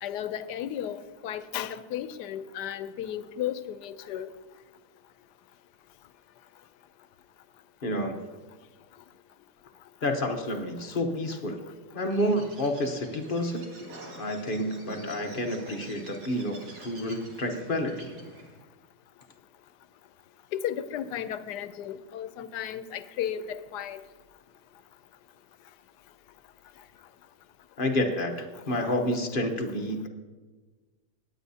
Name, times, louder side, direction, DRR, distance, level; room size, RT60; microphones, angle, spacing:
voice 1, 0.0-4.3 20.5-24.0, left 10 dB, 90° left, 1.2 m, -34 dB
voice 2, 7.8-8.2 10.0-11.6 11.9-13.7 14.2-18.1 27.8-30.1, left 1 dB, 40° left, 1.0 m, -29 dB
Bird, 12.0-18.6, right 2 dB, 75° right, 2.3 m, -46 dB
19.0 x 9.1 x 2.8 m
omnidirectional pair, 1.7 m